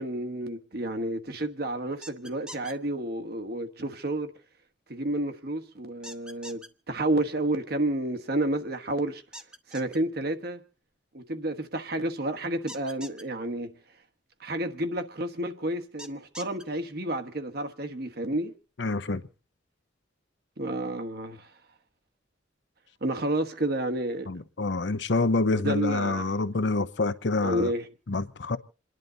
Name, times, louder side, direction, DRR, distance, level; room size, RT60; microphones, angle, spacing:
voice 1, 0.0-4.3 4.9-9.2 9.7-10.6 11.1-13.7 14.4-18.5 20.6-21.5 23.0-24.3 25.6-26.3 27.3-27.9, right 1 dB, 55° right, 1.3 m, -30 dB
sound 1, 2.0-2.7 6.0-6.7 9.3-10.0 12.7-13.2 16.0-16.6, equal, 5° right, 0.8 m, -43 dB
voice 2, 18.8-19.2 24.3-27.7 28.1-28.6, left 3 dB, 70° left, 0.8 m, -27 dB
28.0 x 11.0 x 3.9 m
head